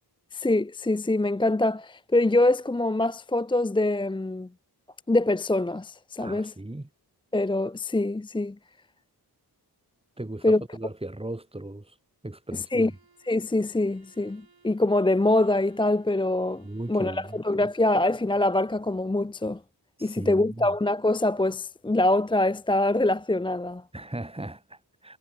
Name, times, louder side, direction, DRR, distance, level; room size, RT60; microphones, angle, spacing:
voice 1, 0.3-4.5 5.1-6.5 7.3-8.6 10.4-10.6 12.7-12.9 13.3-19.6 20.0-23.8, left 2 dB, 15° left, 0.5 m, -24 dB
voice 2, 6.2-6.9 10.2-11.9 12.2-12.9 16.6-17.7 20.0-20.7 23.9-25.2, right 1 dB, 15° right, 2.6 m, -37 dB
Bowed string instrument, 12.6-17.6, right 4 dB, 65° right, 7.9 m, -62 dB
wide cardioid pair, 100°, 40 cm